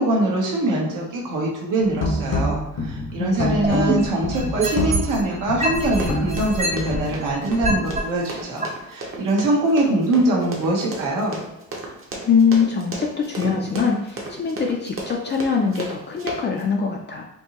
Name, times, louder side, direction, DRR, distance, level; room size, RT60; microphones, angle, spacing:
voice 1, 0.0-11.4, right 1 dB, 75° right, -2 dB, 1.2 m, -23 dB
sound 1, 1.8-7.1, left 1 dB, 75° left, 1.1 m, -26 dB
voice 2, 3.2-4.1 12.3-17.2, left 6 dB, 35° left, 0 dB, 0.4 m, -23 dB
sound 2, 3.6-5.2 5.6-8.0 8.6-8.7, right 2 dB, 20° right, 0.5 m, -24 dB
Run, 5.9-16.6, right 2 dB, 40° right, 0.9 m, -34 dB
4.5 x 2.8 x 2.9 m, 0.81 s
cardioid pair, 140°, 32 cm